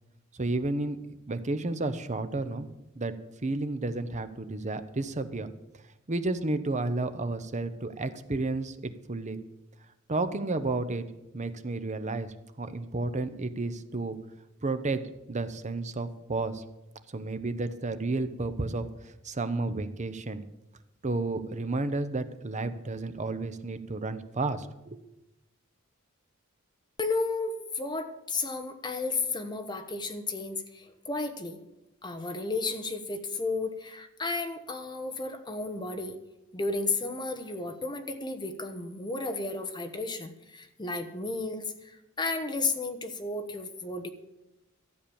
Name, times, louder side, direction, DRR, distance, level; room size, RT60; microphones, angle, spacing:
voice 1, 0.3-1.0 1.3-2.7 2.9-3.1 3.4-5.5 6.1-9.4 10.1-11.1 11.3-14.2 14.6-15.0 15.3-16.6 17.1-20.4 21.0-25.0, right 2 dB, 35° right, 11 dB, 0.9 m, -32 dB
voice 2, 27.0-31.6 32.0-36.1 36.5-44.1, left 3 dB, 20° left, 8 dB, 1.1 m, -33 dB
13.0 x 8.7 x 7.0 m, 0.94 s
head